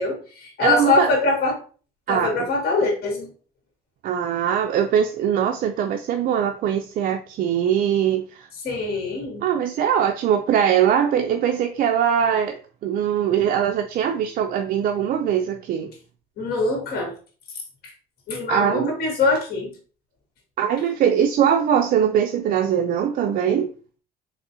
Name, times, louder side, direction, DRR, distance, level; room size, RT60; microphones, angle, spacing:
voice 1, 0.0-1.6 2.1-3.3 8.6-9.4 16.4-17.1 18.3-19.7, left 3 dB, 65° left, 0 dB, 1.8 m, -23 dB
voice 2, 0.6-1.1 2.1-2.3 4.0-8.5 9.4-15.9 18.5-18.9 20.6-23.7, right 9 dB, 55° right, 5 dB, 0.4 m, -21 dB
3.9 x 3.0 x 2.7 m, 0.38 s
cardioid pair, 110°, 17 cm